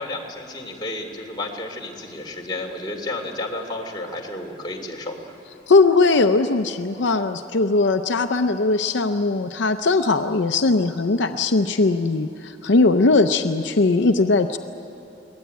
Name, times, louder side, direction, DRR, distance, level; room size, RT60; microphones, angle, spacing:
voice 1, 0.0-5.3, left 2 dB, 25° left, 0 dB, 2.8 m, -32 dB
voice 2, 5.7-14.6, left 3 dB, 70° left, 7 dB, 0.7 m, -19 dB
23.5 x 19.0 x 9.4 m, 2.8 s
head